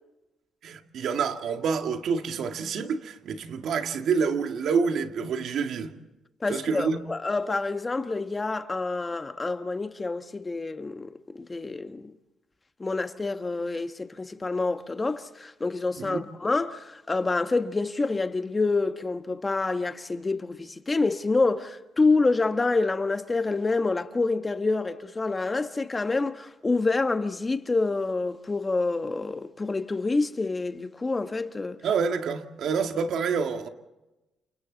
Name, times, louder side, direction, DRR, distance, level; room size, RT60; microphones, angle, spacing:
voice 1, 0.6-5.9 6.5-7.0 16.0-16.2 31.8-33.7, right 5 dB, 70° right, 2.1 m, -27 dB
voice 2, 6.4-12.1 12.8-31.8, left 3 dB, 25° left, 1.4 m, -27 dB
30.0 x 28.5 x 4.1 m
cardioid pair, 90°, 0 cm